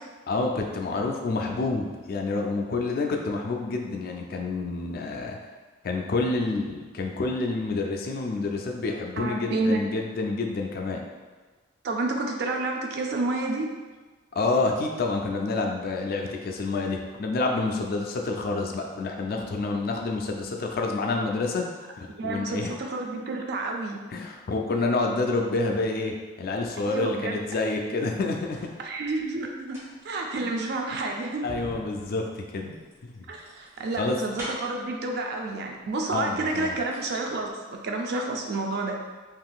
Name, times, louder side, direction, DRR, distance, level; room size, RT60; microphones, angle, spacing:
voice 1, 0.3-5.4 5.8-11.0 14.3-21.7 22.0-22.7 24.1-28.6 30.4-30.5 31.4-32.7 33.0-33.3 33.9-34.2 36.1-36.8, left 3 dB, 50° left, 2 dB, 0.3 m, -28 dB
voice 2, 9.2-9.8 11.8-13.7 22.1-24.0 26.8-27.4 28.8-29.8 30.0-31.5 33.3-39.0, right 2 dB, 55° right, 2 dB, 0.4 m, -29 dB
sound 1, 28.0-28.8 29.5-34.9 35.8-35.9 36.3-37.1 37.4-37.5, equal, 15° right, 0.7 m, -43 dB
3.6 x 2.5 x 2.3 m, 1.4 s
head